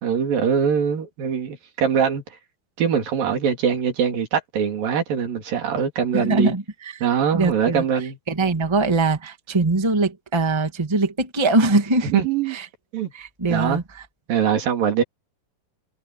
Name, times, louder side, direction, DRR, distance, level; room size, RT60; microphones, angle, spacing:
voice 1, 0.0-2.2 2.8-6.5 7.0-8.2 12.0-12.6 12.9-13.1 13.5-13.8 14.3-15.0, right 7 dB, 85° right, 4.5 m, -22 dB
voice 2, 6.1-6.6 6.9-7.0 7.3-7.8 8.3-12.1 12.5-12.6 13.1-14.0, right 2 dB, 10° right, 1.5 m, -22 dB
omnidirectional pair, 3.9 m